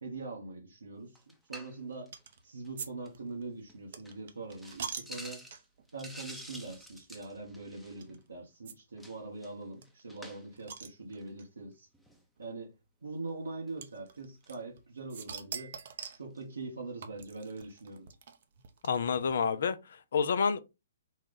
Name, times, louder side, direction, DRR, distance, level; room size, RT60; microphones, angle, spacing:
voice 1, 0.0-2.1 2.4-5.4 5.9-11.9 12.4-12.7 13.0-15.7 16.2-18.1, right 3 dB, 80° right, 1.1 m, -43 dB
sound 1, 1.2-1.8 2.1-2.4 2.6-2.7 3.1-3.2 3.7-3.8 4.1-4.2 4.5-8.2 9.0-10.6 11.1-11.3 11.9-12.2 13.7-13.9 14.4-14.5 15.2-15.3 15.5-16.5 17.3-17.4 17.6-17.7, equal, ahead, 0.8 m, -50 dB
sound 2, 2.1-2.4 2.8-5.9 6.5-6.6 6.9-7.0 8.0-8.2 8.7-8.8 9.0-9.1 9.3-9.4 9.8-11.5 12.4-12.5 13.8-14.8 15.1-16.3 17.0-19.3, right 7 dB, 55° right, 0.7 m, -44 dB
voice 2, 18.8-20.6, left 6 dB, 60° left, 0.5 m, -29 dB
4.2 x 2.4 x 3.8 m
figure-of-eight pair, 130°, 0 cm